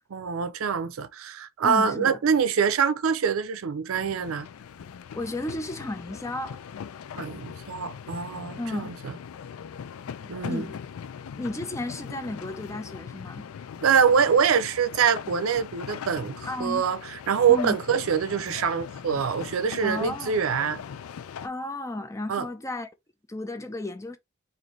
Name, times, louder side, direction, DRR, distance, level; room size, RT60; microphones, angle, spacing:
voice 1, 0.1-4.5 7.2-9.1 10.3-10.7 13.8-20.8 22.3-22.5, right 7 dB, 75° right, 0.5 m, -25 dB
voice 2, 1.6-2.2 5.1-6.6 8.6-8.9 10.2-10.8 11.4-13.5 16.5-16.9 17.5-17.8 19.8-20.4 21.4-22.9 23.3-24.2, left 2 dB, 15° left, 0.5 m, -33 dB
sound 1, 3.9-21.5, left 7 dB, 85° left, 0.4 m, -40 dB
3.9 x 2.6 x 3.0 m
head